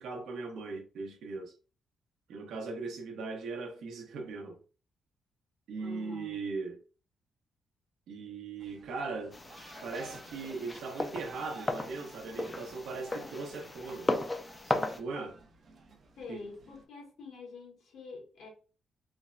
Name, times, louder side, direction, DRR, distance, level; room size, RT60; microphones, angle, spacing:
voice 1, 0.0-1.5 2.3-4.6 5.7-6.8 8.1-9.4 9.8-14.1 14.6-15.4 16.3-16.4, right 4 dB, 85° right, 0.7 m, -39 dB
voice 2, 5.8-6.4 16.2-18.5, left 3 dB, 75° left, 1.2 m, -46 dB
sound 1, 8.6-16.9, right 4 dB, 45° right, 0.5 m, -55 dB
sound 2, 9.3-15.0, left 2 dB, 20° left, 0.3 m, -36 dB
3.3 x 2.1 x 2.4 m
cardioid pair, 130°, 0 cm